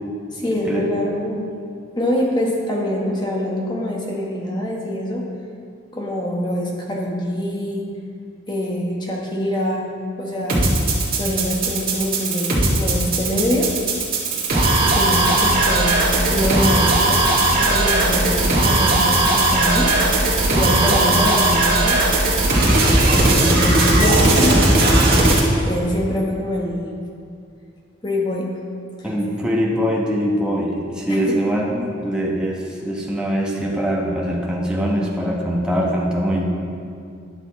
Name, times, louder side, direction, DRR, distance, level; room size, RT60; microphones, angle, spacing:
voice 1, 0.3-1.4 2.0-5.2 5.9-7.9 8.5-10.7 11.2-13.7 14.8-16.0 16.3-17.3 17.6-19.9 20.5-22.0 23.1-25.2 25.6-26.9 28.0-28.5 29.0-29.1 31.1-31.4, equal, 20° left, -2 dB, 1.1 m, -24 dB
sound 1, 10.5-25.4, right 2 dB, 45° right, 1.8 m, -17 dB
voice 2, 29.0-36.5, equal, 5° right, -3 dB, 1.0 m, -22 dB
11.0 x 6.7 x 4.1 m, 2.4 s
head